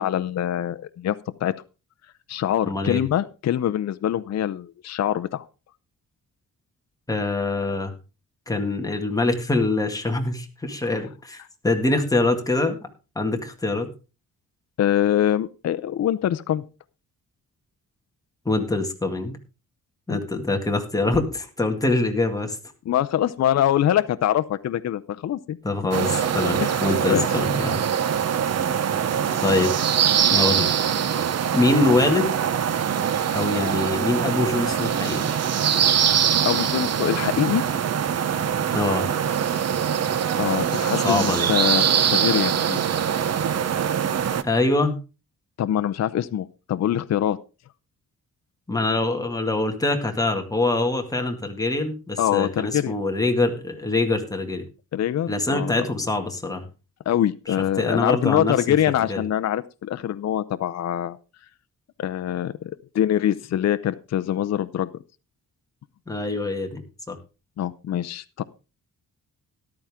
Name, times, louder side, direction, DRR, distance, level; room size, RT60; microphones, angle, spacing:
voice 1, 0.0-1.5 2.3-5.5 14.8-16.6 20.1-20.2 22.9-25.6 26.6-27.3 36.4-37.6 40.3-42.8 45.6-47.4 52.2-53.0 54.9-55.8 57.1-61.2 62.0-64.9 67.6-68.4, left 11 dB, 50° left, 13 dB, 0.6 m, -24 dB
voice 2, 2.7-3.0 7.1-7.9 8.5-12.8 13.2-13.9 18.5-19.3 20.1-22.6 25.6-27.8 29.4-29.8 30.3-30.7 31.5-32.4 33.3-35.3 38.7-39.1 41.0-41.5 44.4-45.0 48.7-54.6 55.3-56.7 57.5-58.8 59.1-59.2 66.1-67.2, left 2 dB, 10° left, 3 dB, 2.0 m, -24 dB
sound 1, 25.9-44.4, right 8 dB, 50° right, 0.9 m, -23 dB
13.5 x 11.5 x 3.6 m, 0.31 s
wide cardioid pair, 150°, 33 cm